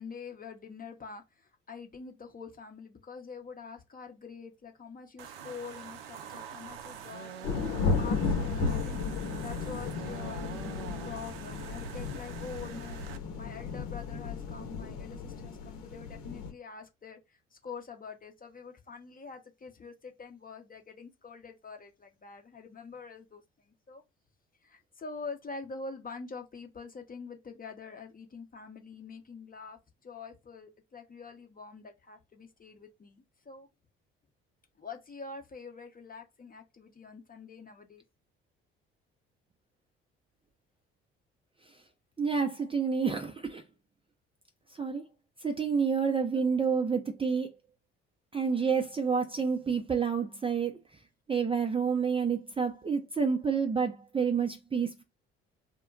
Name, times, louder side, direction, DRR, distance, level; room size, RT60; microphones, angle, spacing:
voice 1, 0.0-9.0 9.4-13.0 13.4-24.0 24.6-33.7 34.8-38.0 46.3-46.6, left 5 dB, 30° left, 0.8 m, -45 dB
sound 1, 5.2-13.2, right 7 dB, 85° right, 0.4 m, -44 dB
sound 2, 7.4-16.5, left 4 dB, 65° left, 0.9 m, -34 dB
voice 2, 42.2-43.6 44.8-45.0 45.4-47.5 48.3-50.8 51.3-55.0, right 6 dB, 20° right, 0.6 m, -29 dB
2.2 x 2.1 x 3.7 m
hypercardioid pair, 55°, 29 cm